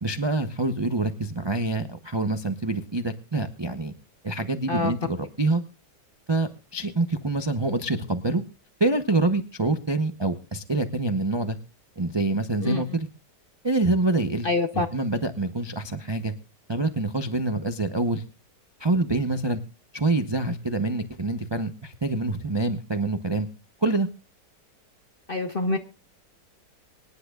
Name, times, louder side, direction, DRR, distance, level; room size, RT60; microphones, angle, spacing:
voice 1, 0.0-3.9 4.2-5.6 6.3-8.4 8.8-11.6 12.0-13.1 13.6-16.3 16.7-18.2 18.8-19.6 19.9-23.5 23.8-24.1, right 2 dB, 45° right, 7 dB, 0.3 m, -26 dB
voice 2, 14.4-14.9 25.3-25.8, left 3 dB, 45° left, 8 dB, 0.7 m, -25 dB
24.5 x 10.5 x 2.3 m, 0.30 s
omnidirectional pair, 1.9 m